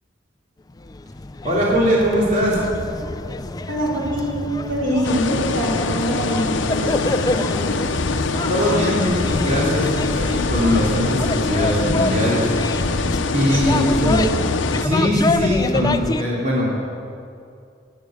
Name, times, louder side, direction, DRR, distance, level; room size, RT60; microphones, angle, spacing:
sound 1, 0.8-16.2, left 2 dB, 20° left, 0.4 m, -26 dB
voice 1, 1.4-2.6 8.5-13.9 14.8-16.8, equal, 40° right, -5 dB, 3.1 m, -21 dB
voice 2, 3.7-7.7 13.5-14.4, right 1 dB, 75° right, -2 dB, 3.7 m, -24 dB
sound 2, 5.0-14.9, left 3 dB, 75° left, 0.7 m, -24 dB
16.5 x 10.5 x 6.4 m, 2.4 s
head